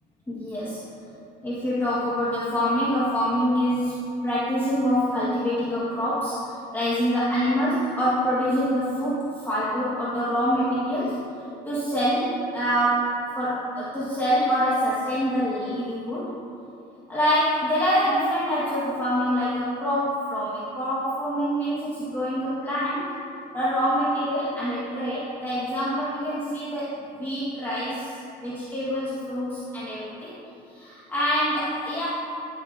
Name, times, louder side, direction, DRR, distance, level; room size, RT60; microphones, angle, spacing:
voice 1, 0.3-0.8 1.4-6.5 6.7-11.2 11.6-16.3 17.1-23.1 23.5-30.3 30.7-32.1, equal, 10° left, -9 dB, 1.6 m, -25 dB
14.0 x 6.9 x 2.7 m, 2.6 s
cardioid pair, 110°, 17 cm